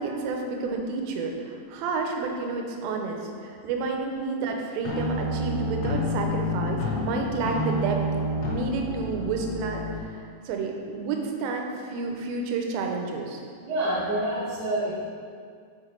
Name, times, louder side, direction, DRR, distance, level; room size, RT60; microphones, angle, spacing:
voice 1, 0.0-8.0 8.5-13.4, right 4 dB, 90° right, 2 dB, 3.3 m, -30 dB
sound 1, 4.9-10.0, left 1 dB, 75° left, 3.4 m, -29 dB
voice 2, 13.6-15.0, right 1 dB, 70° right, -9 dB, 2.7 m, -27 dB
7.5 x 5.8 x 4.6 m, 2.2 s
omnidirectional pair, 5.7 m